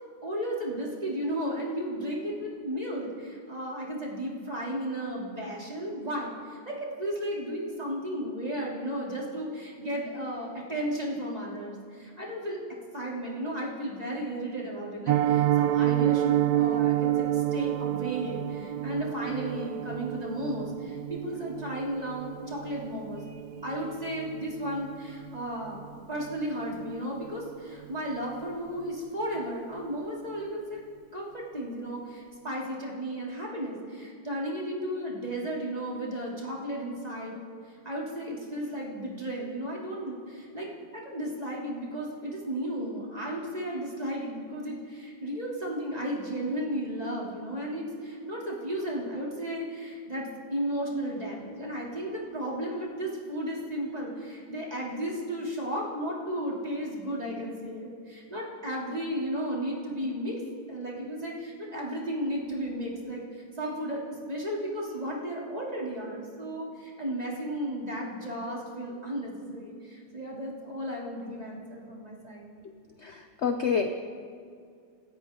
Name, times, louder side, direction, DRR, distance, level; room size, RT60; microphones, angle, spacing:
voice 1, 0.2-12.6 12.9-30.8 31.1-37.4 37.8-40.7 40.9-60.4 60.7-64.0 64.3-72.5, equal, 20° right, -4 dB, 3.1 m, -34 dB
Piano, 15.1-26.0 26.2-26.4 26.8-26.9 27.3-27.5 27.8-27.9, right 13 dB, 80° right, 0.8 m, -29 dB
voice 2, 73.0-73.9, left 6 dB, 60° left, 6 dB, 0.7 m, -28 dB
27.5 x 13.5 x 3.8 m, 2.3 s
omnidirectional pair, 2.1 m